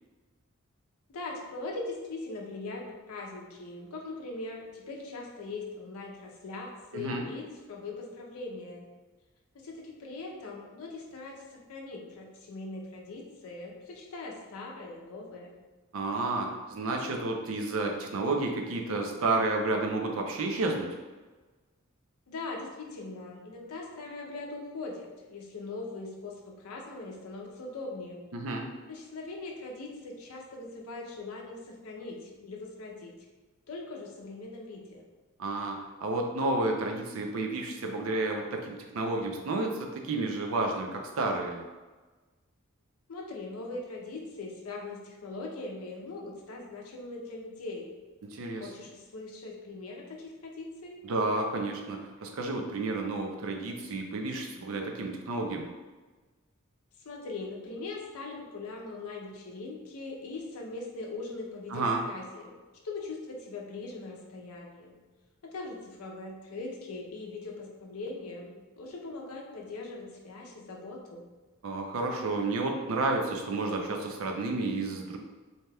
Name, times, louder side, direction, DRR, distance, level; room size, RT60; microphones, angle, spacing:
voice 1, 1.1-8.9 9.5-15.5 22.3-28.2 28.9-33.1 33.7-35.0 43.1-47.9 48.6-51.0 57.0-62.6 62.8-65.0 65.4-71.2, left 3 dB, 85° left, -1 dB, 0.5 m, -41 dB
voice 2, 6.9-7.2 15.9-20.9 28.3-28.7 35.4-41.6 48.3-48.7 51.0-55.7 61.7-62.0 71.6-75.2, right 2 dB, 70° right, 2 dB, 0.5 m, -31 dB
2.8 x 2.2 x 3.3 m, 1.3 s
head